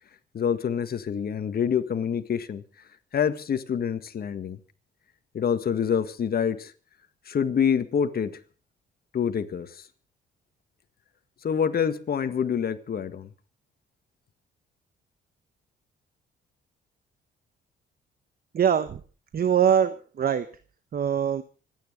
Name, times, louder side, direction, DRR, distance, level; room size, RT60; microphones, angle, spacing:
voice 1, 0.3-2.6 3.1-4.6 5.3-6.7 7.3-8.3 9.1-9.9 11.4-13.3, left 7 dB, 50° left, 10 dB, 1.7 m, -26 dB
voice 2, 18.5-19.0 19.3-20.5 20.9-21.4, right 8 dB, 50° right, 12 dB, 1.1 m, -23 dB
26.0 x 9.6 x 5.2 m, 0.39 s
cardioid pair, 90°, 20 cm